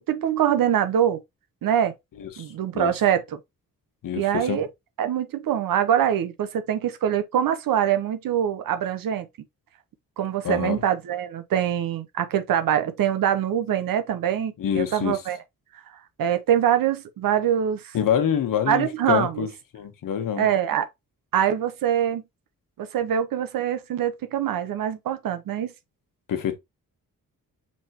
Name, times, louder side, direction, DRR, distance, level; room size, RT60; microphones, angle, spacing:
voice 1, 0.1-1.2 1.6-1.9 2.4-3.4 4.1-4.7 5.0-9.3 10.2-15.4 16.2-17.9 18.7-19.5 20.4-20.9 21.3-22.2 22.8-25.7, right 9 dB, 75° right, 0.8 m, -24 dB
voice 2, 4.0-4.6 10.4-10.8 14.6-15.2 17.9-19.5 19.7-20.5 26.3-26.5, left 9 dB, 70° left, 1.1 m, -26 dB
5.3 x 3.3 x 2.9 m
cardioid pair, 90°, 34 cm